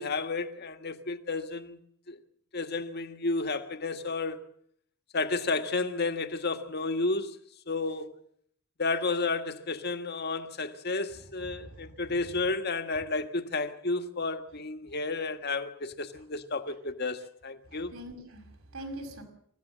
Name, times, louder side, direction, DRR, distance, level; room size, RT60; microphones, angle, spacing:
voice 1, 0.0-1.8 2.1-2.2 2.5-4.4 5.1-7.4 7.7-8.2 8.8-17.9, left 3 dB, 50° left, 1.7 m, -32 dB
voice 2, 11.4-12.4 14.9-15.0 17.7-19.2, right 1 dB, 80° right, 6.0 m, -44 dB
27.0 x 16.0 x 7.4 m
head